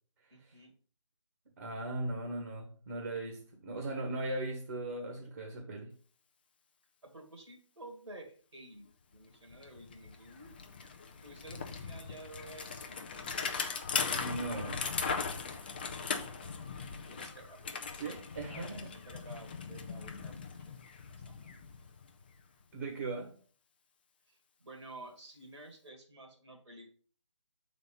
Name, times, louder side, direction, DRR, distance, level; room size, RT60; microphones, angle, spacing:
voice 1, 0.3-0.7 7.0-10.5 11.2-13.3 16.4-16.6 17.1-17.8 18.5-20.8 21.1-21.5 24.3-26.9, right 2 dB, 70° right, 2.1 m, -52 dB
voice 2, 1.6-5.9 14.2-14.8 18.0-18.9 22.7-23.3, right 2 dB, 40° right, 1.3 m, -38 dB
Bicycle, 9.1-9.2 9.5-22.4, left 5 dB, 20° left, 0.4 m, -39 dB
6.4 x 4.1 x 5.1 m
figure-of-eight pair, 155°, 16 cm